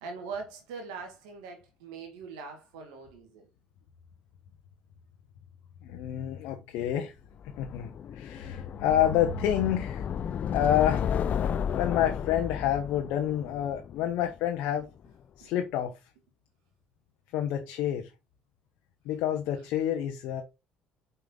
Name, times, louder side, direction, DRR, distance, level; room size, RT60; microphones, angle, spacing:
voice 1, 0.0-3.4 15.4-15.5, right 5 dB, 85° right, 1.9 m, -41 dB
voice 2, 5.8-7.1 7.6-10.0 10.5-11.2 11.8-14.9 15.4-15.9 17.3-18.1 19.0-20.4, left 10 dB, 75° left, 1.0 m, -28 dB
sound 1, 7.4-14.5, left 8 dB, 50° left, 0.4 m, -33 dB
5.8 x 5.3 x 3.8 m
supercardioid pair, 70°, 3 cm